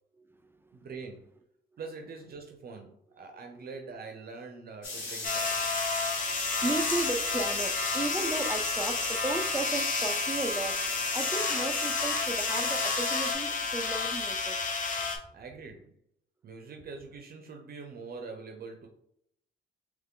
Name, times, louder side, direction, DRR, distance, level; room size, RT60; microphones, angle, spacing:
voice 1, 0.2-0.9 6.2-14.6, right 2 dB, 10° right, 0.5 m, -35 dB
voice 2, 0.7-1.3 1.8-5.6 15.3-15.9 16.4-18.9, right 4 dB, 50° right, 0.6 m, -44 dB
sound 1, 4.8-13.3, left 3 dB, 75° left, 1.6 m, -37 dB
sound 2, 5.2-15.2, left 4 dB, 40° left, 0.8 m, -31 dB
3.6 x 3.1 x 3.6 m
cardioid pair, 90°, 20 cm